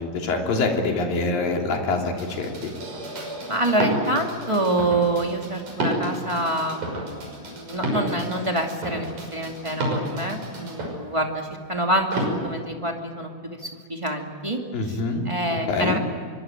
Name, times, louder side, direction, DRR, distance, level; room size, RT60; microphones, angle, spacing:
voice 1, 0.0-2.7 14.7-16.0, left 3 dB, 55° left, 2 dB, 4.5 m, -25 dB
sound 1, 2.2-11.0 12.1-12.3, right 1 dB, 45° right, 7.2 m, -30 dB
voice 2, 3.5-14.6 14.9-15.0 15.2-16.0, right 1 dB, 15° right, 2 dB, 1.0 m, -26 dB
25.0 x 24.5 x 9.1 m, 2.1 s
omnidirectional pair, 5.1 m